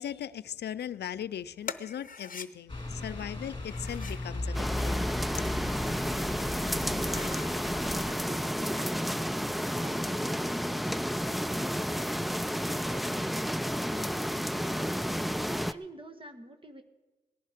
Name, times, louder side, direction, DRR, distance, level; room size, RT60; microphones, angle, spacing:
voice 1, 0.0-5.0 5.4-5.5, left 10 dB, 90° left, 0.4 m, -38 dB
sound 1, 1.6-2.5 3.6-4.3 5.2-5.9 6.4-6.5 6.9-7.5, left 6 dB, 55° left, 0.8 m, -43 dB
sound 2, 2.7-8.1, left 2 dB, 25° left, 2.1 m, -36 dB
sound 3, 4.5-15.7, equal, ahead, 0.4 m, -31 dB
voice 2, 6.0-7.5 8.1-9.4 9.8-11.2 12.9-13.6 13.9-15.2 15.7-16.8, right 1 dB, 30° right, 1.4 m, -48 dB
18.0 x 11.0 x 5.0 m
cardioid pair, 55°, 17 cm